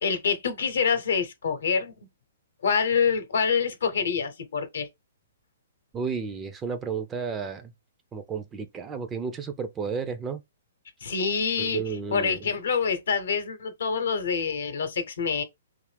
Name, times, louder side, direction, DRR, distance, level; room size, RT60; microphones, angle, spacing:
voice 1, 0.0-1.9 2.6-4.9 11.0-15.4, left 6 dB, 70° left, 0.8 m, -26 dB
voice 2, 5.9-7.7 8.1-10.4 11.6-12.4, right 5 dB, 15° right, 0.4 m, -32 dB
2.7 x 2.5 x 3.3 m
hypercardioid pair, 130°, 0 cm